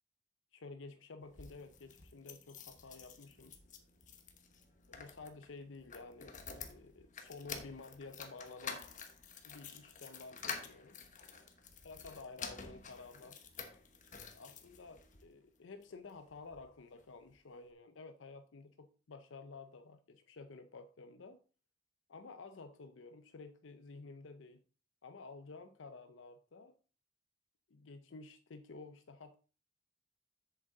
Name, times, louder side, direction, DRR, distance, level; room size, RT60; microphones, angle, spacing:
voice 1, 0.5-3.6 4.9-8.9 9.4-11.0 11.8-13.4 14.3-21.4 22.1-24.6 25.0-26.7 27.7-29.4, left 3 dB, 75° left, 0.6 m, -52 dB
sound 1, 1.2-15.2 15.8-16.7 17.0-17.1 17.3-17.4, left 5 dB, 40° left, 1.1 m, -49 dB
7.9 x 7.2 x 3.8 m
head